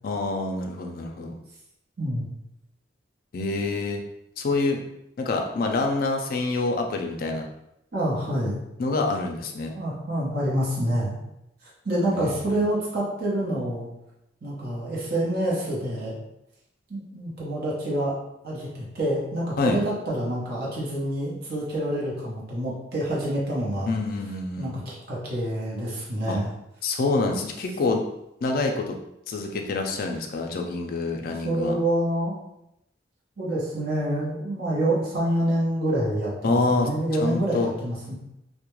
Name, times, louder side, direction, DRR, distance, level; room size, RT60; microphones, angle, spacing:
voice 1, 0.0-1.3 3.3-4.0 4.4-4.8 5.2-7.5 8.8-9.7 12.1-12.5 19.6-19.8 23.9-24.7 26.3-26.4 26.8-28.0 28.4-29.0 29.3-31.8 36.4-36.9 37.2-37.7, left 3 dB, 50° left, 3 dB, 0.3 m, -26 dB
voice 2, 7.9-8.6 9.7-11.2 11.8-13.9 14.4-16.1 16.9-18.2 18.4-23.9 24.6-26.5 31.2-32.3 33.4-38.2, right 1 dB, 55° right, -6 dB, 0.7 m, -27 dB
2.3 x 2.1 x 2.9 m, 0.84 s
head